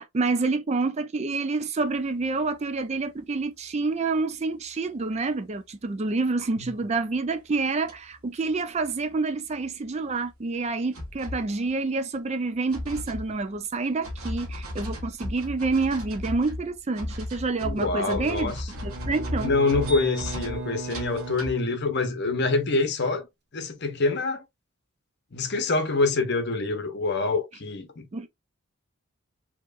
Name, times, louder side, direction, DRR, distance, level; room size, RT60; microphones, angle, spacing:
voice 1, 0.0-18.5 18.8-19.5 28.1-28.3, right 3 dB, 30° right, 0.4 m, -28 dB
sound 1, 2.2-2.3 6.6-6.7 7.4-7.6 7.8-8.0 8.2-8.3 8.5-8.6 8.8-8.9 9.1-9.2 9.6-9.7 10.3-10.4 10.9-11.7 12.7-21.5, left 1 dB, 85° right, 1.3 m, -35 dB
voice 2, 17.6-18.7 19.4-23.3 23.5-24.4 25.3-28.0, left 3 dB, 50° left, 0.8 m, -26 dB
Bowed string instrument, 18.7-22.3, right 4 dB, 50° right, 0.7 m, -38 dB
4.4 x 2.9 x 2.4 m
head